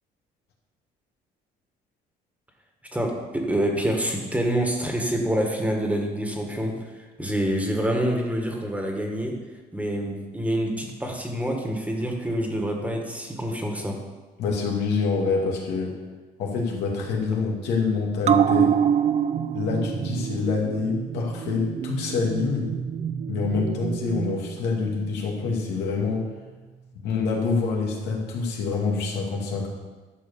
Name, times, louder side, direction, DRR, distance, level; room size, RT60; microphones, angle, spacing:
voice 1, 2.9-9.4 9.7-14.0, right 1 dB, 10° right, 1 dB, 1.8 m, -27 dB
voice 2, 14.4-16.0 16.4-18.7 19.5-22.7 23.3-26.3 27.0-29.7, left 4 dB, 85° left, -1 dB, 2.3 m, -26 dB
sound 1, 18.2-25.1 25.5-25.6, right 8 dB, 40° right, 0.5 m, -26 dB
12.0 x 4.9 x 7.0 m, 1.3 s
cardioid pair, 110°, 17 cm